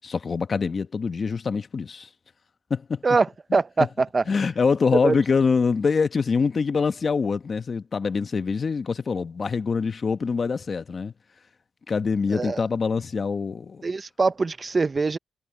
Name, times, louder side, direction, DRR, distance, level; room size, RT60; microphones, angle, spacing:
voice 1, 0.0-2.1 2.7-3.0 4.3-11.1 11.9-13.9, left 5 dB, 45° left, 1.2 m, -24 dB
voice 2, 3.0-4.2 4.9-5.2 12.3-12.6 13.8-15.2, right 4 dB, 35° right, 0.7 m, -23 dB
cardioid pair, 80°, 0 cm